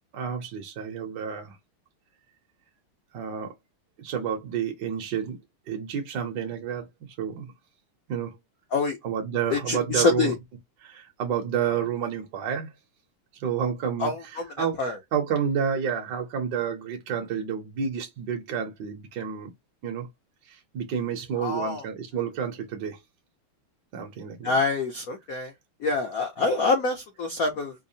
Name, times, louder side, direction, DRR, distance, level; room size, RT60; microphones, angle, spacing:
voice 1, 0.1-1.6 3.1-3.5 4.0-5.4 5.7-6.9 7.2-7.5 8.1-8.3 9.0-10.3 10.8-12.7 13.4-19.5 19.8-20.1 20.5-23.0 23.9-24.5, right 7 dB, 65° right, 1.2 m, -30 dB
voice 2, 9.5-10.3 14.0-15.0 21.4-21.8 24.4-25.5 25.8-27.7, left 3 dB, 65° left, 0.9 m, -26 dB
5.4 x 2.0 x 2.6 m
omnidirectional pair, 2.4 m